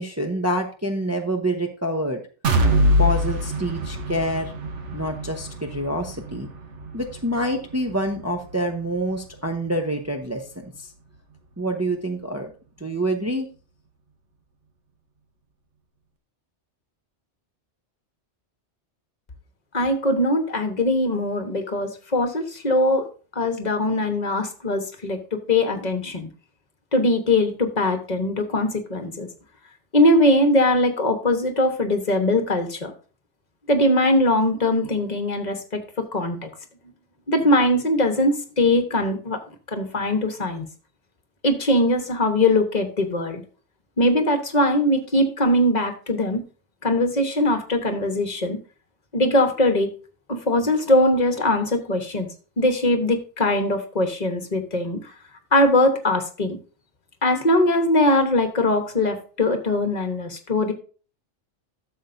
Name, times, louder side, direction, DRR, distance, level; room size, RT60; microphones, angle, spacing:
voice 1, 0.0-2.2 3.0-4.5 4.9-6.5 6.9-10.4 10.8-10.9 11.6-12.5 12.8-13.5, right 1 dB, 15° right, 2 dB, 0.7 m, -26 dB
sound 1, 2.4-10.2 10.6-10.8 11.2-11.3, equal, 80° right, 1.4 m, -25 dB
voice 2, 19.7-23.1 23.3-26.3 26.9-29.3 29.9-32.9 33.7-36.5 37.3-39.4 39.7-40.7 41.4-43.4 44.0-46.4 46.8-48.6 49.1-49.9 50.3-52.3 52.6-55.0 55.5-56.6 57.2-60.7, left 1 dB, 40° left, 6 dB, 1.3 m, -21 dB
12.0 x 6.9 x 2.7 m, 0.37 s
omnidirectional pair, 1.2 m